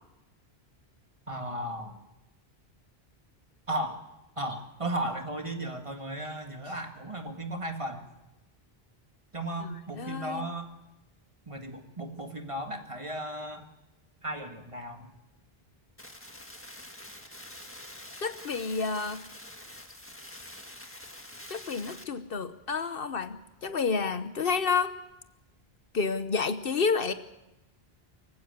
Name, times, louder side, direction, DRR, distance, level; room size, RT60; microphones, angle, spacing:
voice 1, 1.3-2.0 3.7-4.0 4.4-8.0 9.3-10.7 11.5-13.7 14.2-15.1, right 1 dB, 30° right, 4 dB, 2.0 m, -35 dB
voice 2, 9.6-10.5 18.2-19.2 21.5-24.9 25.9-27.1, left 5 dB, 65° left, 11 dB, 1.1 m, -30 dB
sound 1, 16.0-22.0, left 1 dB, 10° left, 1.6 m, -46 dB
24.5 x 15.5 x 8.1 m, 0.95 s
omnidirectional pair, 1.0 m